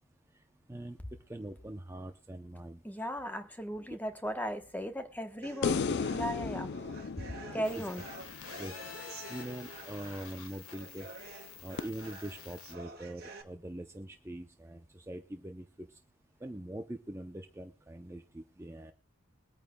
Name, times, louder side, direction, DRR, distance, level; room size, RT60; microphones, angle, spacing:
voice 1, 1.3-2.8 7.5-7.6 8.6-8.7 9.3-11.1 11.6-15.7 16.4-18.9, right 1 dB, 10° right, 0.6 m, -43 dB
voice 2, 2.8-5.8 6.1-6.7 7.5-8.0, equal, 10° left, 1.0 m, -36 dB
sound 1, 5.4-13.4, right 3 dB, 45° right, 1.8 m, -50 dB
sound 2, 5.6-8.9 11.8-11.9, left 5 dB, 50° left, 0.4 m, -35 dB
sound 3, 7.6-12.7, left 7 dB, 90° left, 1.4 m, -48 dB
22.0 x 9.0 x 2.2 m
head